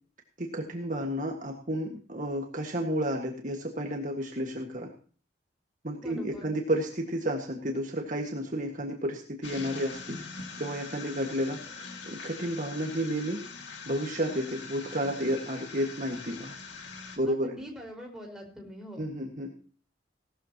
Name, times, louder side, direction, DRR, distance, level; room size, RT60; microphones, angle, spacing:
voice 1, 0.4-4.9 5.8-10.2 10.6-13.4 13.9-16.5 17.2-17.5 19.0-19.5, equal, 45° right, 2 dB, 1.7 m, -31 dB
voice 2, 6.0-6.5 17.3-19.1, equal, 5° right, -1 dB, 4.9 m, -43 dB
sound 1, 9.4-17.2, left 4 dB, 80° left, 2.4 m, -43 dB
18.0 x 13.0 x 3.0 m, 0.42 s
head